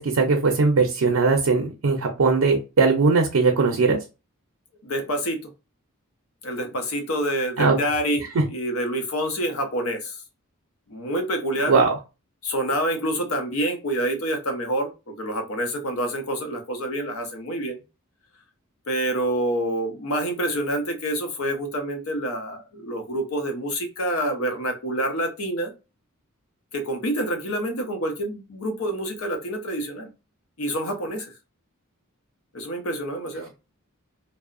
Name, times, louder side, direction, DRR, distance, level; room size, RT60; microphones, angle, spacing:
voice 1, 0.0-4.0 7.6-7.8 8.3-8.4 11.7-12.0, right 4 dB, 75° right, 3 dB, 0.5 m, -19 dB
voice 2, 4.8-5.5 6.4-10.2 10.9-11.8 12.4-17.8 18.9-25.7 26.7-30.1 30.6-31.3 32.5-33.5, right 1 dB, 70° left, 4 dB, 0.7 m, -27 dB
2.6 x 2.0 x 2.4 m, 0.29 s
head